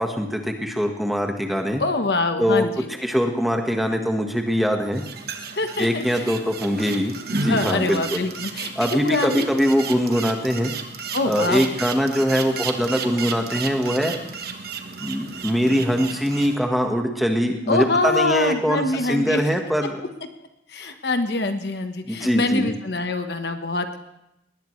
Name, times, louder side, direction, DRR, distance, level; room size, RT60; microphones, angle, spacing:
voice 1, 0.0-1.8 2.4-2.7 3.0-5.0 5.8-8.2 8.7-10.7 11.2-14.1 15.0-20.0 20.8-20.9 22.1-22.7, equal, ahead, 2 dB, 1.4 m, -22 dB
voice 2, 1.8-2.9 5.6-6.0 7.5-8.7 9.0-9.5 11.1-11.6 17.7-19.4 20.7-24.0, left 2 dB, 60° left, 6 dB, 1.2 m, -24 dB
sound 1, 4.9-16.5, right 4 dB, 55° right, 1.3 m, -33 dB
20.0 x 18.5 x 3.3 m, 0.85 s
head